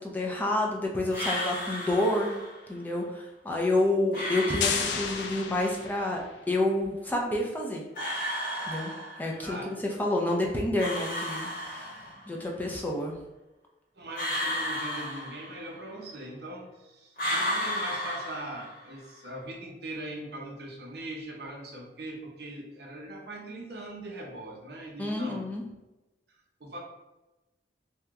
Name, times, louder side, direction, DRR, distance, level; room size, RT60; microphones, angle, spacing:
voice 1, 0.0-2.3 2.7-6.2 6.5-7.8 8.7-8.9 9.2-12.0 12.3-13.1 25.0-25.6, left 1 dB, 10° left, -1 dB, 0.4 m, -29 dB
sound 1, 1.1-2.6 4.1-5.6 7.9-9.5 10.8-12.3 14.1-15.9 17.2-19.0, equal, 50° left, 1.0 m, -33 dB
sound 2, 4.6-6.4, left 7 dB, 75° left, 0.3 m, -32 dB
voice 2, 13.9-25.4 26.3-26.8, right 1 dB, 60° right, -1 dB, 0.7 m, -41 dB
2.9 x 2.2 x 3.5 m, 1.0 s
head